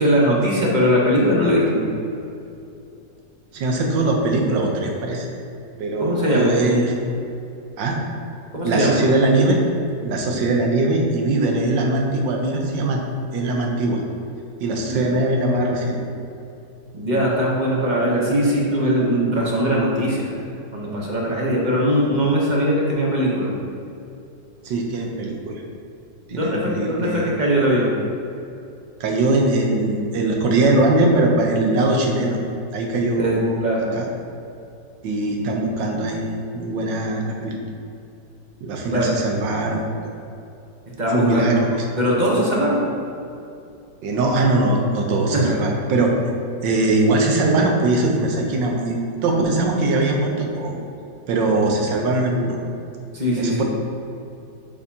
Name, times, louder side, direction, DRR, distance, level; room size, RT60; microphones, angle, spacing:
voice 1, 0.0-1.9 6.0-6.6 8.5-8.9 14.8-15.1 16.9-20.3 20.7-23.5 26.3-28.0 33.2-33.8 38.9-39.1 41.0-41.7 42.0-42.8 45.3-45.5 53.1-53.6, equal, 35° right, -4 dB, 0.9 m, -20 dB
voice 2, 3.5-5.3 5.8-6.9 7.8-8.0 8.6-9.6 10.0-13.0 13.3-14.0 14.6-16.0 24.6-25.6 26.3-27.3 29.0-32.4 32.7-33.6 33.9-34.1 35.0-37.6 38.6-39.8 41.1-41.8 44.0-46.1 46.6-50.8 51.3-52.5 53.4-53.6, right 2 dB, 80° right, 1 dB, 1.5 m, -21 dB
6.6 x 5.5 x 2.8 m, 2.7 s
omnidirectional pair, 1.9 m